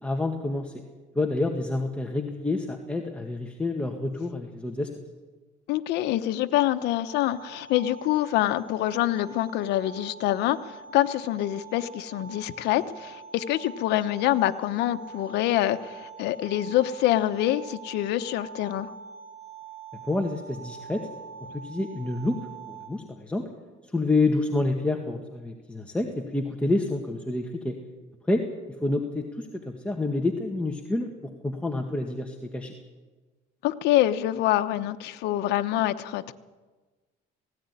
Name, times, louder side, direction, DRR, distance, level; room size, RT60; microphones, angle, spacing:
voice 1, 0.0-0.7 1.2-4.9 20.1-21.1 21.5-22.4 22.7-23.5 23.8-27.8 28.3-28.4 28.8-32.7, left 2 dB, 5° left, 2 dB, 1.9 m, -28 dB
voice 2, 5.7-18.9 33.6-36.3, left 14 dB, 85° left, 9 dB, 1.0 m, -26 dB
sound 1, 7.1-22.9, right 6 dB, 70° right, 7.7 m, -45 dB
18.5 x 16.5 x 9.8 m, 1.3 s
cardioid pair, 110°, 17 cm